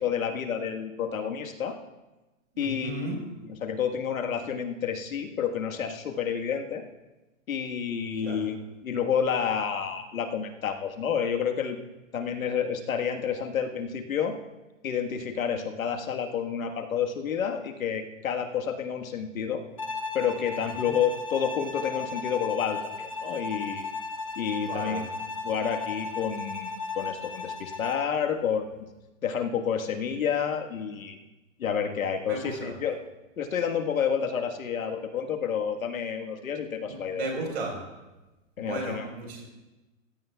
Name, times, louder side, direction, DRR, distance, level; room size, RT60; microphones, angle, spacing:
voice 1, 0.0-1.7 2.6-6.8 7.5-11.8 12.1-14.3 14.8-19.6 20.1-23.9 24.3-25.1 25.4-28.7 29.2-31.2 31.6-33.0 33.4-37.3 38.6-39.1, left 7 dB, 90° left, 4 dB, 1.6 m, -29 dB
voice 2, 2.5-3.2 8.1-8.4 20.6-20.9 24.7-25.0 32.3-32.7 36.9-37.8 38.6-39.4, right 2 dB, 50° right, 1 dB, 4.5 m, -35 dB
Bowed string instrument, 19.8-28.1, left 4 dB, 25° left, 0.4 m, -35 dB
16.5 x 14.5 x 2.3 m, 1.1 s
hypercardioid pair, 180°, 40 cm